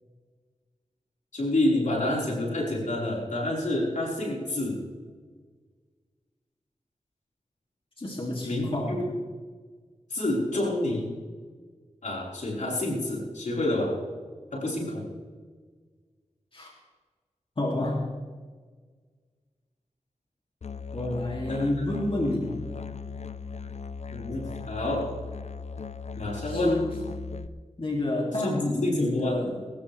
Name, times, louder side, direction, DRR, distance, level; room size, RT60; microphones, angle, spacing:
voice 1, 1.3-4.8 8.4-9.1 10.1-11.1 12.0-14.0 14.5-15.0 21.5-21.9 24.1-25.1 26.2-26.8 28.4-29.4, left 1 dB, 80° left, -4 dB, 4.9 m, -28 dB
voice 2, 8.0-9.0 16.5-16.7 17.6-18.0 20.9-22.6 26.4-27.0 27.8-29.6, left 1 dB, 45° left, -2 dB, 2.9 m, -29 dB
Musical instrument, 20.6-27.5, left 5 dB, 60° left, 0.7 m, -38 dB
22.0 x 13.5 x 3.5 m, 1.5 s
cardioid pair, 40°, 13 cm